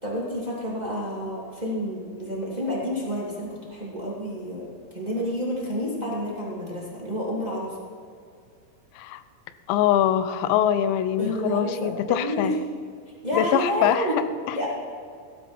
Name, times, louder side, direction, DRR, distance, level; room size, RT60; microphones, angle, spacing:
voice 1, 0.0-4.6 4.9-7.7 11.2-12.5 13.2-14.1 14.5-14.6, equal, 20° right, -5 dB, 1.0 m, -29 dB
voice 2, 9.7-12.6 13.3-14.1 14.5-14.7, left 10 dB, 85° left, 12 dB, 3.4 m, -23 dB
17.0 x 12.5 x 4.4 m, 2.3 s
omnidirectional pair, 6.0 m